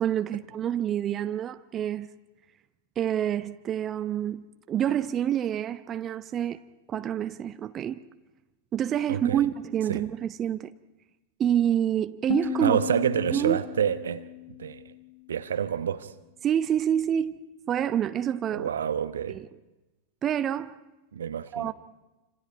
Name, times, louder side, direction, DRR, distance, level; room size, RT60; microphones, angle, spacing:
voice 1, 0.0-2.1 3.0-8.0 8.7-10.7 11.4-12.8 13.3-13.6 16.4-17.4 17.7-18.7 19.3-19.5 20.2-20.8 21.5-21.7, right 10 dB, 25° right, 0.8 m, -27 dB
voice 2, 9.1-9.5 9.9-10.0 12.6-14.3 14.6-14.8 15.3-16.1 18.5-19.4 21.1-21.7, right 8 dB, 65° right, 1.0 m, -28 dB
sound 1, 12.3-15.3, left 11 dB, 40° left, 1.4 m, -35 dB
28.5 x 26.5 x 4.6 m
figure-of-eight pair, 90°, 0 cm